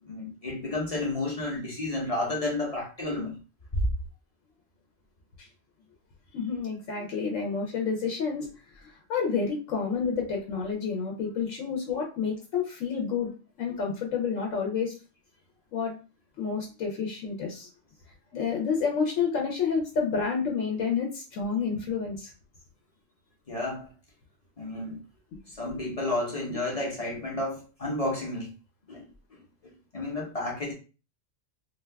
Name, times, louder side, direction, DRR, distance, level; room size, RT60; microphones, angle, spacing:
voice 1, 0.0-3.4 3.7-3.8 23.5-23.9 24.6-25.0 25.5-28.5 28.9-29.1 29.9-30.7, left 2 dB, 35° left, 0.7 m, -31 dB
voice 2, 6.3-8.5 8.8-14.9 15.7-15.9 16.4-17.7 18.3-22.3 26.5-26.6, left 5 dB, 80° left, 1.1 m, -29 dB
2.6 x 2.3 x 3.3 m
omnidirectional pair, 1.3 m